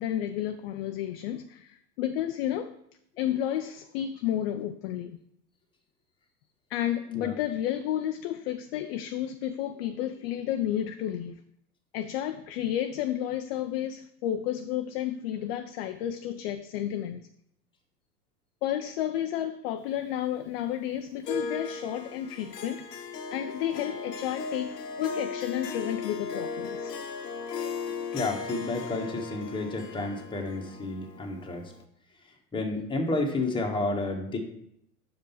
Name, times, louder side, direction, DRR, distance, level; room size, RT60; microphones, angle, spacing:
voice 1, 0.0-2.7 3.2-5.2 6.7-11.4 11.9-17.3 18.6-22.9 23.3-26.9, left 11 dB, 40° left, 8 dB, 0.4 m, -31 dB
Harp, 21.2-31.8, left 4 dB, 85° left, 0.9 m, -37 dB
voice 2, 28.1-31.7 32.5-34.4, left 2 dB, 10° left, 1 dB, 1.4 m, -31 dB
6.8 x 5.2 x 5.6 m, 0.74 s
hypercardioid pair, 95°, 48 cm